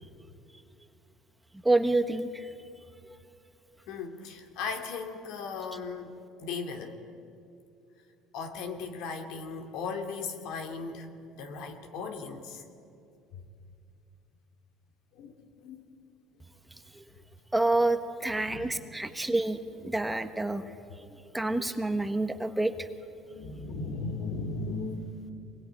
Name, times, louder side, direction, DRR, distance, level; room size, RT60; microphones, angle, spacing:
voice 1, 1.6-2.5 16.9-17.0 17.5-20.6 21.3-22.7, right 2 dB, 10° right, 8 dB, 1.4 m, -28 dB
voice 2, 3.9-7.0 8.3-12.6 13.3-13.4 15.1-15.8 18.4-18.9 23.3-25.3, left 4 dB, 70° left, 5 dB, 2.6 m, -37 dB
25.0 x 21.5 x 9.9 m, 2.6 s
supercardioid pair, 105°, 0 cm